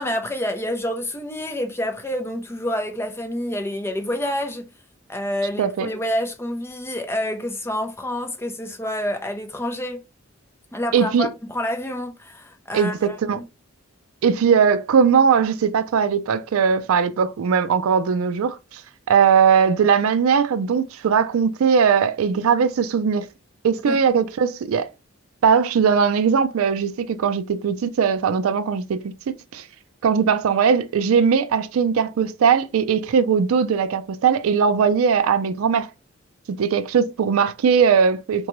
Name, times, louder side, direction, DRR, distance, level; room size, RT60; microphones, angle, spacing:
voice 1, 0.0-4.7 5.1-10.0 10.7-13.4 23.9-24.0, equal, 10° left, 0.4 m, -28 dB
voice 2, 5.6-5.9 10.9-11.3 12.7-13.4 14.2-18.8 19.1-23.3 23.6-24.9 25.4-29.6 30.0-35.9 36.5-38.5, right 6 dB, 80° right, 0.4 m, -19 dB
3.8 x 2.2 x 2.9 m
head